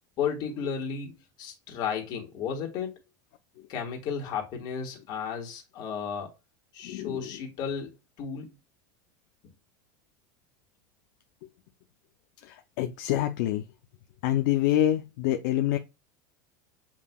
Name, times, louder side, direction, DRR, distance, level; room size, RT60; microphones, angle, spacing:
voice 1, 0.2-2.9 3.7-6.3 6.7-7.9 8.2-8.5, left 7 dB, 45° left, 1.4 m, -33 dB
voice 2, 6.8-7.3 12.4-13.6 14.2-15.8, left 13 dB, 70° left, 0.4 m, -26 dB
7.1 x 2.7 x 2.2 m
supercardioid pair, 150°, 11 cm